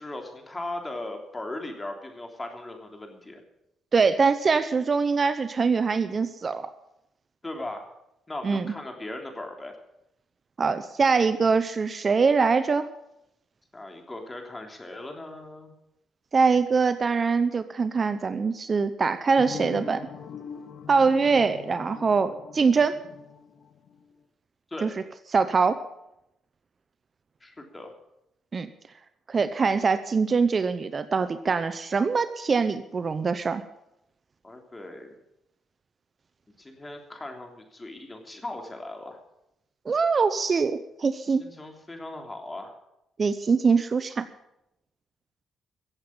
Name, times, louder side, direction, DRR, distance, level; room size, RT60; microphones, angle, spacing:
voice 1, 0.0-3.4 7.4-7.9 8.3-9.8 13.7-15.7 24.7-24.9 27.4-27.9 34.4-35.1 36.6-39.2 41.3-42.8, left 2 dB, 20° left, 3 dB, 3.2 m, -38 dB
voice 2, 3.9-6.7 8.4-8.7 10.6-12.9 16.3-20.0 20.9-23.0 24.8-24.9 25.3-25.8 28.5-28.7 29.3-33.6 39.9-41.4 43.2-44.2, right 5 dB, 40° right, 12 dB, 0.8 m, -23 dB
sound 1, 19.4-24.1, left 7 dB, 60° left, 1.7 m, -42 dB
15.5 x 7.9 x 8.7 m, 0.85 s
cardioid pair, 90°, 0 cm